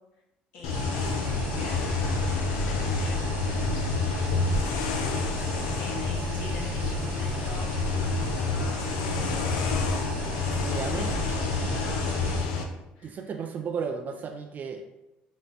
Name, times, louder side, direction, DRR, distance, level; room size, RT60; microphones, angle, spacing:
voice 1, 0.5-1.2 1.5-13.2, left 2 dB, 75° left, -2 dB, 1.1 m, -46 dB
sound 1, 0.6-12.6, left 4 dB, 90° left, 0.4 m, -29 dB
sound 2, 0.7-12.4, equal, 70° right, 0.9 m, -33 dB
voice 2, 10.5-11.1 13.0-14.9, right 6 dB, 45° right, 5 dB, 0.4 m, -34 dB
5.9 x 2.1 x 2.7 m, 0.93 s
supercardioid pair, 75°, 4 cm